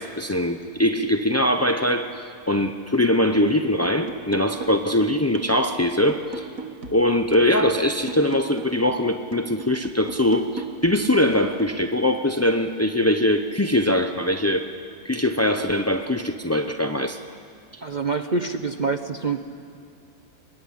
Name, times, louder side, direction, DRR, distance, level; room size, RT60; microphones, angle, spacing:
voice 1, 0.0-6.5 6.9-14.6 15.0-17.2, left 1 dB, 20° left, 6 dB, 0.4 m, -22 dB
sound 1, 3.8-5.0 5.4-8.9 9.3-11.8, right 4 dB, 60° right, 1.8 m, -38 dB
voice 2, 17.8-19.4, right 4 dB, 35° right, 7 dB, 0.8 m, -26 dB
24.0 x 21.5 x 9.9 m, 2.5 s
omnidirectional pair, 1.7 m